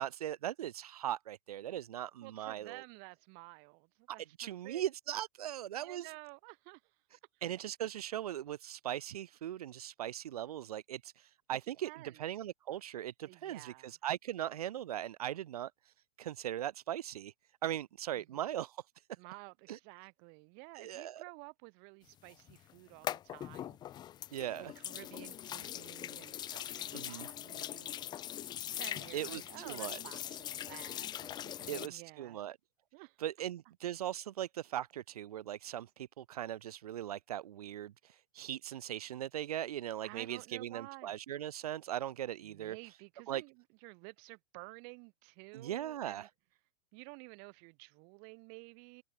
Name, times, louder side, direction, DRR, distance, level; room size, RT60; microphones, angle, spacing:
voice 1, 0.0-2.8 4.1-6.1 7.1-17.3 17.6-18.8 19.7-19.8 20.7-21.2 24.3-24.7 26.9-27.3 29.1-30.0 31.7-32.6 33.2-42.8 43.3-43.4 45.5-46.3, right 11 dB, 70° right, 1.3 m, -39 dB
voice 2, 2.2-4.8 5.8-7.0 11.8-12.3 13.2-13.9 18.2-18.4 19.2-23.8 24.6-28.0 28.8-32.4 32.9-33.2 40.0-41.1 42.4-46.3 46.9-49.0, right 40 dB or more, 50° right, 3.4 m, -52 dB
sound 1, 22.3-31.9, left 11 dB, 20° left, 0.4 m, -42 dB
hypercardioid pair, 105°, 20 cm